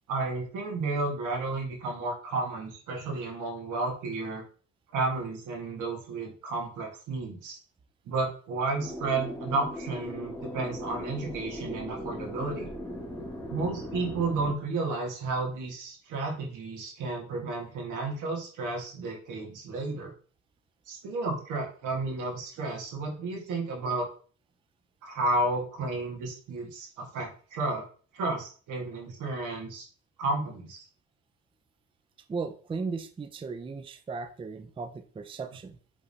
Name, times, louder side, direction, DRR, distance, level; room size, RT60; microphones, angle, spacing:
voice 1, 0.1-4.4 4.9-7.6 8.0-12.7 13.5-20.1 20.9-24.1 25.0-27.8 28.1-29.9 30.2-30.8, right 3 dB, 85° right, -1 dB, 1.5 m, -32 dB
sound 1, 8.8-14.5, left 1 dB, 10° left, 1.5 m, -39 dB
voice 2, 32.3-35.8, right 4 dB, 20° right, 9 dB, 0.4 m, -36 dB
4.9 x 3.5 x 2.7 m, 0.42 s
cardioid pair, 90°, 30 cm